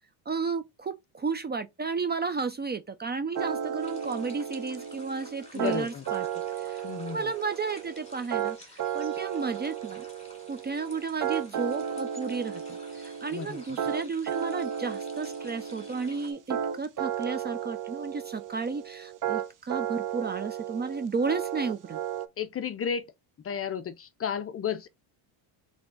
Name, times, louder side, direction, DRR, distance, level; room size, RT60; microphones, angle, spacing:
voice 1, 0.3-6.2 6.6-8.6 8.9-10.1 10.5-22.0, right 4 dB, 25° right, 0.4 m, -33 dB
sound 1, 3.3-22.3, right 9 dB, 40° right, 0.8 m, -34 dB
sound 2, 3.8-16.3, left 1 dB, 15° left, 2.1 m, -53 dB
voice 2, 5.5-6.0 6.8-7.3 13.3-13.6 22.4-23.1 23.4-24.9, left 7 dB, 30° left, 0.5 m, -33 dB
3.7 x 3.4 x 3.7 m
cardioid pair, 115°, 47 cm